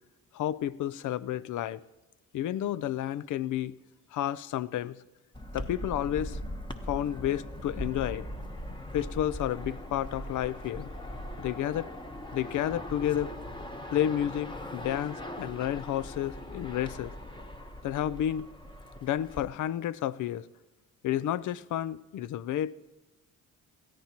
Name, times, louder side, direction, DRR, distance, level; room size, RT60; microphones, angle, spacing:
voice 1, 0.3-1.8 2.3-3.8 4.1-5.0 5.5-6.4 6.9-8.3 8.9-10.9 11.4-11.9 12.3-13.3 13.9-17.1 17.8-18.5 19.0-20.5 21.0-22.7, left 11 dB, 60° left, 0.5 m, -31 dB
sound 1, 5.3-19.4, left 1 dB, 15° left, 1.0 m, -40 dB
19.5 x 14.0 x 2.9 m
cardioid pair, 90°, 34 cm